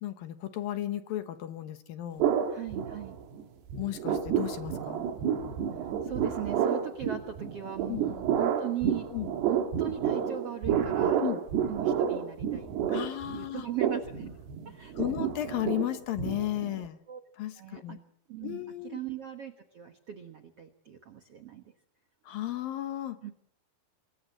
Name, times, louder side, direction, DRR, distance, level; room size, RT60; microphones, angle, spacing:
voice 1, 0.0-2.3 3.8-5.0 7.9-8.0 9.1-9.3 11.2-11.4 12.9-13.7 14.9-17.0 17.4-18.0 18.4-19.0 22.3-23.2, left 13 dB, 70° left, 9 dB, 2.8 m, -34 dB
sound 1, 2.2-3.4 3.7-16.9, right 8 dB, 80° right, 4.0 m, -30 dB
voice 2, 2.5-3.2 6.0-9.1 9.5-11.3 11.7-13.1 13.3-14.3 14.6-14.9 17.1-17.2 17.6-18.0 18.3-21.6 23.2-23.3, right 10 dB, 65° right, 6 dB, 1.5 m, -38 dB
26.5 x 21.0 x 7.6 m, 0.69 s
omnidirectional pair, 4.7 m